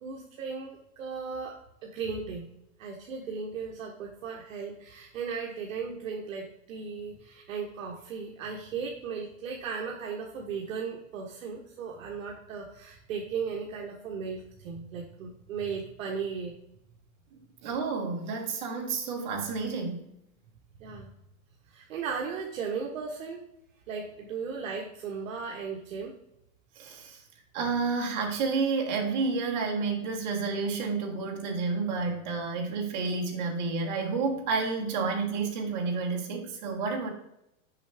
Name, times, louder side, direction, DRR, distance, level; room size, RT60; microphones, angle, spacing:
voice 1, 0.0-2.5 2.8-16.5 20.8-21.1 21.7-23.5 23.9-26.2, right 5 dB, 65° right, 0 dB, 1.1 m, -36 dB
voice 2, 17.6-20.1 26.8-27.2 27.5-37.1, right 4 dB, 30° right, 1 dB, 1.2 m, -30 dB
6.3 x 5.5 x 3.3 m, 0.81 s
supercardioid pair, 180°, 43 cm